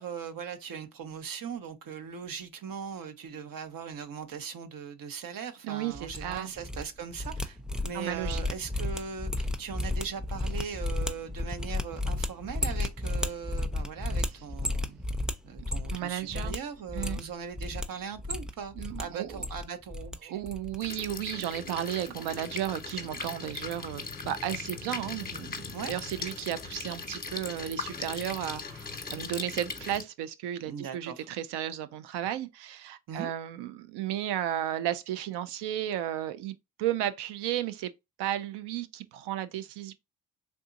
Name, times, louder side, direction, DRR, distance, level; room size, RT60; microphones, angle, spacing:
voice 1, 0.0-7.6 7.8-15.0 15.4-20.4 25.7-25.9 30.6-31.3 33.1-33.3, right 6 dB, 55° right, 0.8 m, -39 dB
voice 2, 5.6-6.5 7.9-8.4 15.9-16.6 16.9-17.2 18.8-19.4 20.3-37.9 38.2-39.9, right 12 dB, 90° right, 0.5 m, -34 dB
sound 1, 6.0-6.8 7.1-16.0 16.3-16.6 16.9-17.9 18.2-19.0 19.3-20.2 20.4-20.8 21.0-21.2, left 2 dB, ahead, 0.4 m, -33 dB
sound 2, 20.8-30.0, left 4 dB, 20° left, 0.9 m, -39 dB
3.5 x 2.7 x 2.5 m
cardioid pair, 70°, 39 cm